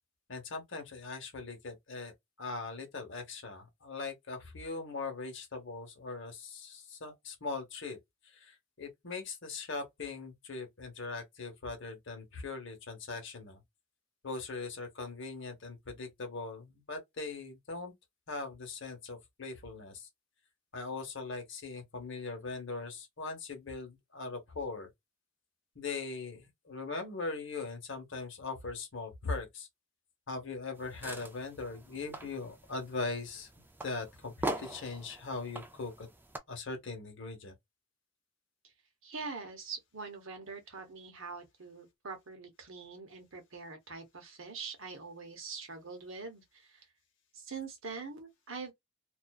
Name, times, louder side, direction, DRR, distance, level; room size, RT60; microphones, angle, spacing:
voice 1, 0.3-2.1 2.4-8.0 8.3-13.6 14.2-17.9 18.3-20.1 20.7-24.9 25.7-29.7 30.3-33.5 33.8-36.1 36.5-37.5, left 3 dB, 55° left, 0.9 m, -40 dB
sound 1, 30.7-36.4, right 1 dB, 10° right, 0.3 m, -43 dB
voice 2, 39.0-46.9 47.3-48.7, right 4 dB, 65° right, 0.9 m, -44 dB
2.5 x 2.2 x 2.2 m
head